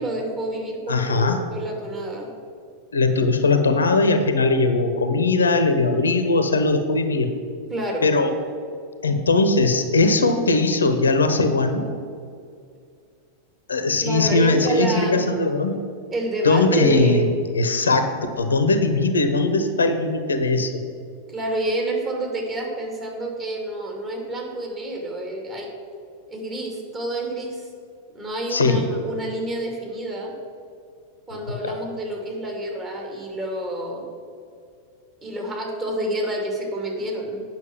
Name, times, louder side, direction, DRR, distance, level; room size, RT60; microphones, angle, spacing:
voice 1, 0.0-2.3 7.7-8.1 14.0-15.2 16.1-17.3 21.3-25.7 26.3-27.7 28.1-30.3 31.3-34.0 35.2-37.4, right 1 dB, 25° right, 0 dB, 2.6 m, -28 dB
voice 2, 0.9-1.4 2.9-7.3 8.0-8.3 9.0-11.9 13.7-15.7 16.4-17.3 17.5-18.1 18.4-20.7 28.5-28.8 31.3-31.7, left 3 dB, 75° left, 8 dB, 0.9 m, -20 dB
8.9 x 6.1 x 7.3 m, 2.3 s
figure-of-eight pair, 90°, 0 cm